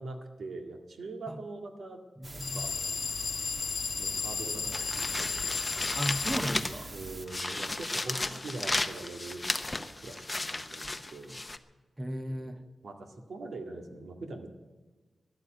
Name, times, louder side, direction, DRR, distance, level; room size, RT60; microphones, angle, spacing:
voice 1, 0.0-2.0 2.3-2.8 4.0-5.8 6.9-9.4 10.0-11.4 12.3-12.6 12.8-14.5, right 2 dB, 75° right, 5 dB, 1.9 m, -43 dB
voice 2, 2.2-2.7 5.9-6.9 12.0-12.6, equal, 15° right, 9 dB, 0.7 m, -35 dB
sound 1, 2.2-7.2, right 1 dB, 30° right, 1.4 m, -43 dB
sound 2, 2.4-6.4, left 6 dB, 65° left, 0.9 m, -34 dB
sound 3, 4.7-6.9 7.3-11.6, left 2 dB, 20° left, 0.7 m, -34 dB
13.5 x 11.5 x 9.2 m, 1.3 s
wide cardioid pair, 145°, 0 cm